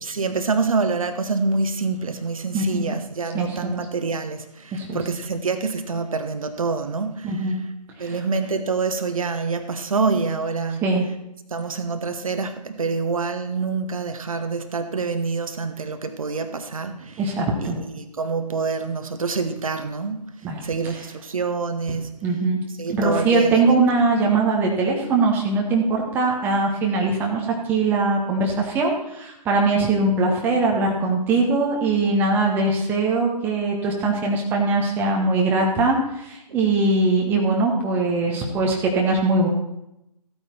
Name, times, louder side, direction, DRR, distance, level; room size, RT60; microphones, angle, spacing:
voice 1, 0.0-7.6 8.0-10.8 11.5-17.2 17.6-20.3 20.6-22.1 22.8-23.8 36.5-36.6, right 4 dB, 55° right, 8 dB, 1.2 m, -26 dB
voice 2, 2.5-2.9 3.3-3.7 4.7-5.0 7.2-7.6 8.0-8.2 10.8-11.1 17.2-17.8 20.4-20.6 20.9-21.0 22.2-22.6 22.9-39.5, right 3 dB, 10° right, -1 dB, 1.2 m, -21 dB
14.5 x 9.0 x 4.5 m, 0.86 s
figure-of-eight pair, 145°, 21 cm